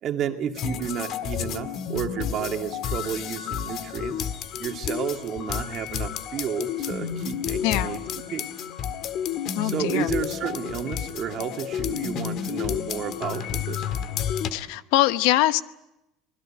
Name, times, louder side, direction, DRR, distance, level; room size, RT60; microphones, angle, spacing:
voice 1, 0.0-4.3 4.6-8.5 9.6-13.9, right 8 dB, 40° right, 4 dB, 2.4 m, -32 dB
sound 1, 0.5-14.5, left 8 dB, 45° left, 1.8 m, -31 dB
voice 2, 7.6-8.0 9.5-10.1 14.5-15.6, left 15 dB, 70° left, 12 dB, 1.0 m, -23 dB
26.5 x 21.0 x 8.9 m, 0.90 s
cardioid pair, 155°, 0 cm